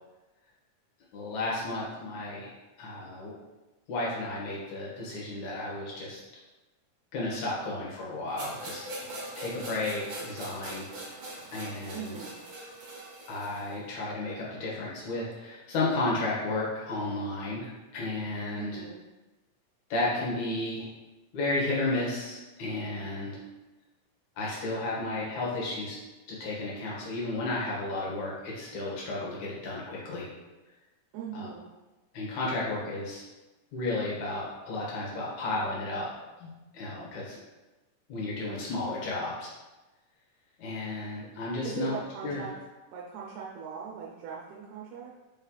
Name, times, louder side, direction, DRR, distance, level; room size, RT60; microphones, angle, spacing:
voice 1, 1.1-2.5 2.8-3.3 3.9-6.2 7.1-8.9 9.4-10.9 11.5-12.2 13.3-18.8 19.9-20.9 21.3-23.4 24.4-26.0 26.3-30.3 31.3-31.5 32.1-33.2 33.7-36.1 36.4-37.4 38.1-39.5 40.6-41.9 42.2-42.4, left 2 dB, 65° left, -5 dB, 2.8 m, -33 dB
sound 1, 8.4-13.7, right 1 dB, 45° right, 1.9 m, -41 dB
voice 2, 11.9-12.4 18.5-19.1 31.1-31.7 41.6-42.5 42.9-45.2, right 7 dB, 75° right, -4 dB, 1.9 m, -40 dB
5.5 x 3.3 x 5.5 m, 1.1 s
omnidirectional pair, 3.7 m